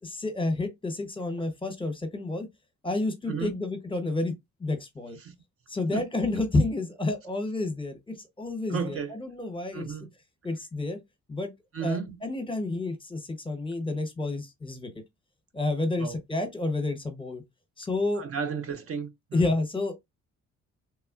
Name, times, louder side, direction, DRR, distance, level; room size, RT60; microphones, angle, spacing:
voice 1, 0.0-2.5 2.8-4.3 4.6-5.2 5.7-9.9 10.4-11.0 11.3-11.5 11.8-14.9 15.5-17.4 17.8-18.2 19.3-19.9, left 2 dB, 15° left, 0.9 m, -30 dB
voice 2, 8.7-9.2 9.7-10.1 11.7-12.2 16.0-16.2 18.2-19.5, right 6 dB, 50° right, 0.5 m, -33 dB
3.2 x 2.0 x 2.4 m
cardioid pair, 90°, 30 cm